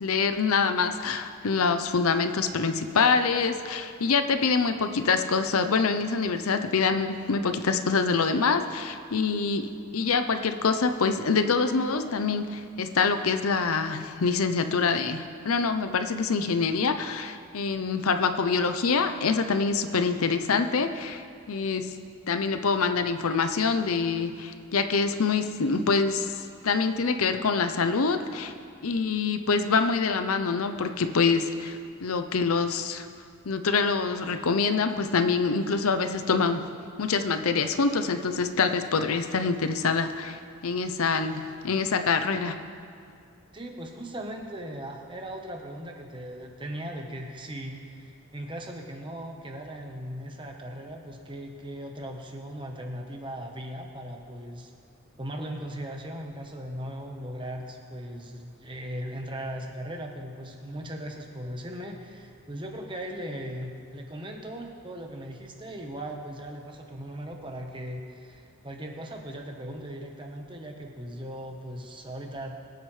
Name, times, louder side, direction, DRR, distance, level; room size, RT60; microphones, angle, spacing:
voice 1, 0.0-21.9 22.3-26.3 26.6-28.5 28.8-33.1 33.5-36.6 37.0-42.6, left 4 dB, 80° left, 8 dB, 0.7 m, -25 dB
voice 2, 43.5-54.7 55.2-72.6, equal, 20° right, 2 dB, 1.1 m, -38 dB
23.0 x 9.0 x 3.3 m, 2.3 s
head